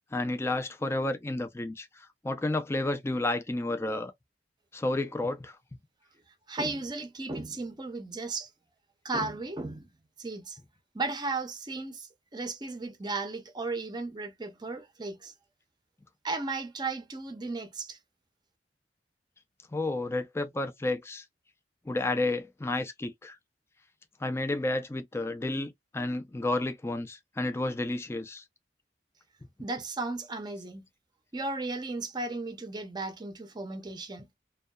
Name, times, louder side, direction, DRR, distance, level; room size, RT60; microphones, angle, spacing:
voice 1, 0.1-4.1 4.7-5.6 19.7-21.2 21.9-23.4 24.2-28.4, left 2 dB, 15° left, 0.4 m, -31 dB
voice 2, 6.5-8.5 9.0-9.9 10.2-10.6 10.9-15.3 16.2-18.0 29.6-30.9 31.3-34.3, right 3 dB, 25° right, 0.6 m, -35 dB
2.7 x 2.2 x 2.3 m
head